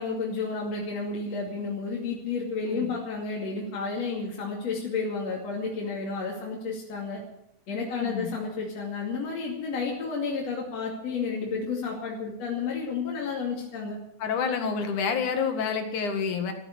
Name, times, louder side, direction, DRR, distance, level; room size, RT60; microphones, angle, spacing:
voice 1, 0.0-7.2 7.7-14.0, left 4 dB, 60° left, -3 dB, 3.7 m, -31 dB
voice 2, 7.9-8.3 14.2-16.5, left 6 dB, 85° left, 6 dB, 3.4 m, -28 dB
14.5 x 10.0 x 9.5 m, 0.80 s
omnidirectional pair, 3.4 m